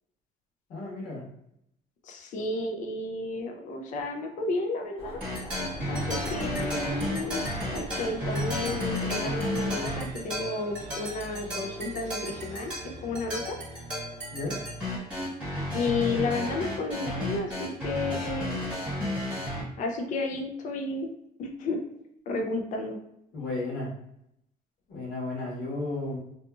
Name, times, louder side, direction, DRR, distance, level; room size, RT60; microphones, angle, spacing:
voice 1, 0.7-1.2 14.3-14.6 23.3-23.9 24.9-26.2, left 2 dB, 70° left, -9 dB, 1.3 m, -33 dB
voice 2, 2.0-5.2 5.9-7.5 7.7-12.7 13.0-13.6 15.7-18.6 19.8-21.1 21.4-21.8 22.3-23.0, left 3 dB, 50° left, 3 dB, 0.4 m, -32 dB
sound 1, 5.0-10.1, equal, 35° left, 1.0 m, -43 dB
sound 2, 5.2-19.6, left 1 dB, 5° right, 1.3 m, -33 dB
sound 3, 5.7-15.5, right 1 dB, 50° right, 0.4 m, -44 dB
2.7 x 2.6 x 2.3 m, 0.78 s
cardioid pair, 150°, 16 cm